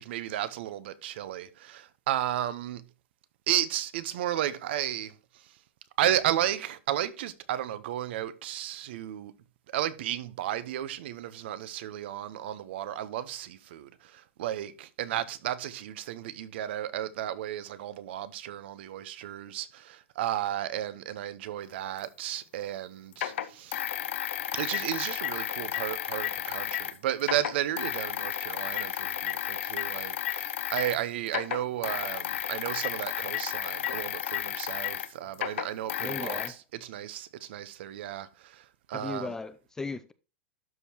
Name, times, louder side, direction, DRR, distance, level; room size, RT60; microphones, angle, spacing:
voice 1, 0.0-2.8 3.5-5.6 6.0-9.3 9.7-23.8 24.5-39.3, right 12 dB, 60° right, 0.9 m, -33 dB
sound 1, 22.0-22.1 23.1-26.9 27.2-31.0 31.3-36.5, left 11 dB, 75° left, 0.9 m, -33 dB
voice 2, 36.0-36.6 38.9-40.1, left 3 dB, 10° left, 0.3 m, -37 dB
12.5 x 4.7 x 2.9 m
supercardioid pair, 155°, 7 cm